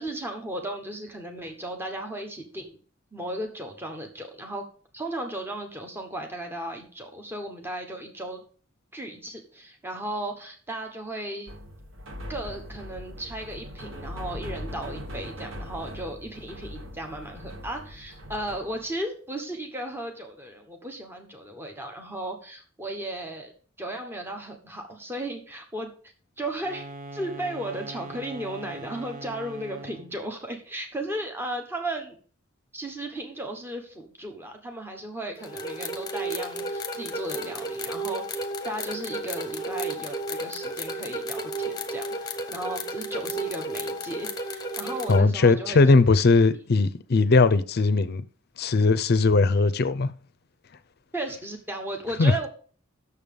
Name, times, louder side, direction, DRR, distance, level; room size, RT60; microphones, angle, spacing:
voice 1, 0.0-2.8 3.1-4.7 4.9-8.4 8.9-11.5 12.3-23.5 23.8-25.9 26.4-26.9 27.1-32.1 32.7-46.1 51.1-52.5, right 1 dB, 10° right, 1.1 m, -35 dB
sound 1, 11.5-18.9, equal, 75° right, 1.3 m, -40 dB
sound 2, 26.5-30.2, right 2 dB, 45° right, 0.7 m, -41 dB
sound 3, 35.4-45.2, right 1 dB, 20° left, 0.9 m, -33 dB
voice 2, 45.1-48.2 48.6-50.1 52.2-52.3, left 3 dB, 50° left, 0.5 m, -19 dB
7.0 x 6.8 x 5.3 m
head